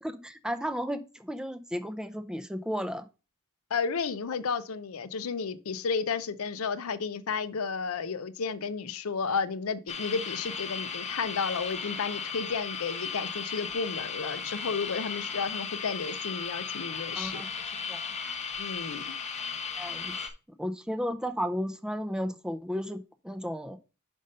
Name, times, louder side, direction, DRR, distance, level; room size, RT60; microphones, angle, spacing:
voice 1, 0.0-3.0 17.2-17.5 17.9-18.0 19.8-20.1 20.6-23.8, equal, 5° right, 0.5 m, -33 dB
voice 2, 3.7-17.4 18.6-19.1, left 5 dB, 70° left, 0.6 m, -32 dB
sound 1, 9.9-20.3, left 5 dB, 30° left, 0.9 m, -36 dB
5.2 x 5.2 x 5.4 m
head